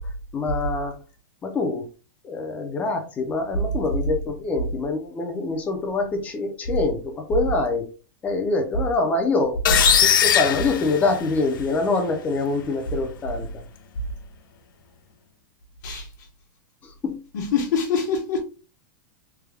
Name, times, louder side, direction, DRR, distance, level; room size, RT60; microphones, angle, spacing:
voice 1, 0.3-0.9 1.4-1.8 2.2-7.9 8.2-9.6 10.2-13.5 16.8-17.2, left 3 dB, 15° left, 0.5 m, -25 dB
sound 1, 9.7-11.6, left 8 dB, 80° left, 0.5 m, -20 dB
voice 2, 17.3-18.4, left 6 dB, 60° left, 1.1 m, -24 dB
3.4 x 2.2 x 3.3 m
supercardioid pair, 165°, 11 cm